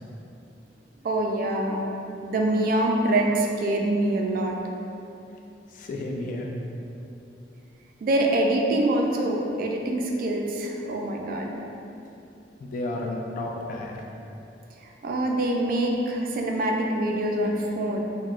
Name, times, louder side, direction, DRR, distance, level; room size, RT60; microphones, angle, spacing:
voice 1, 1.0-1.8 2.2-4.6 8.0-11.6 15.0-18.0, right 1 dB, 55° right, 1 dB, 0.3 m, -25 dB
voice 2, 5.7-6.5 12.6-14.0, left 2 dB, 50° left, 1 dB, 0.3 m, -32 dB
4.4 x 2.1 x 2.4 m, 2.8 s
head